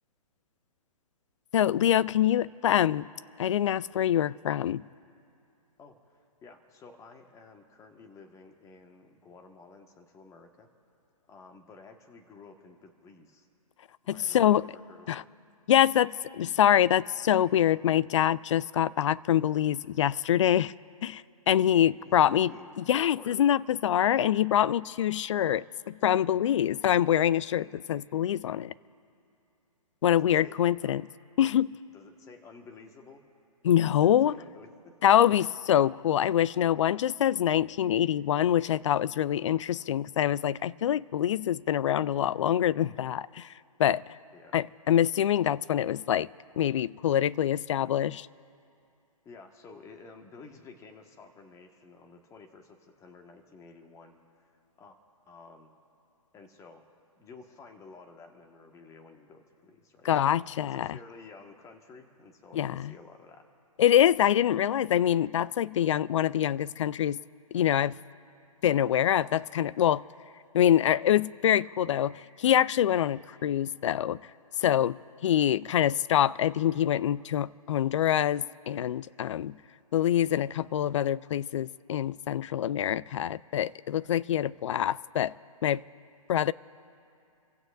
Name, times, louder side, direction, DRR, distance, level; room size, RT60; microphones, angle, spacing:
voice 1, 1.5-3.1 3.4-4.8 14.1-14.7 15.1-15.2 15.7-20.7 21.0-22.5 22.8-28.7 30.0-31.1 31.4-31.8 33.6-34.4 35.0-43.5 43.8-44.0 44.5-46.3 46.6-48.3 60.1-61.0 62.5-62.9 63.8-67.2 67.5-68.0 68.6-70.0 70.5-74.2 74.6-79.6 79.9-85.3 85.6-85.8 86.3-86.5, left 10 dB, 55° left, 0.5 m, -25 dB
voice 2, 5.8-10.7 11.3-13.5 14.0-15.1 22.0-23.4 30.1-31.0 31.9-33.2 34.0-34.9 44.3-44.6 49.2-54.5 54.8-55.0 55.2-55.7 56.3-56.9 57.2-60.3 60.6-63.5, left 4 dB, 15° left, 1.6 m, -52 dB
29.5 x 16.0 x 2.6 m
figure-of-eight pair, 130°, 19 cm